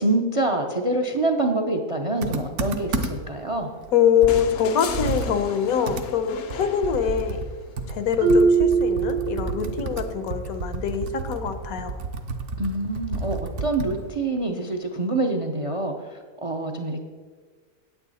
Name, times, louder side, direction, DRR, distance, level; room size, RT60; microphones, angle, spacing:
voice 1, 0.0-3.7 12.6-17.0, right 2 dB, 45° right, 5 dB, 0.4 m, -26 dB
Computer keyboard, 2.2-3.4 3.8-3.9 4.2-14.1, right 3 dB, 60° right, 1.1 m, -31 dB
voice 2, 3.9-7.4 7.9-12.0, left 8 dB, 80° left, 9 dB, 1.2 m, -24 dB
sound 1, 4.3-7.6 9.1-9.2, left 6 dB, 60° left, 0.7 m, -37 dB
Marimba xylophone, 8.2-10.0, right 4 dB, 85° right, 1.4 m, -21 dB
9.2 x 8.8 x 4.1 m, 1.5 s
omnidirectional pair, 1.5 m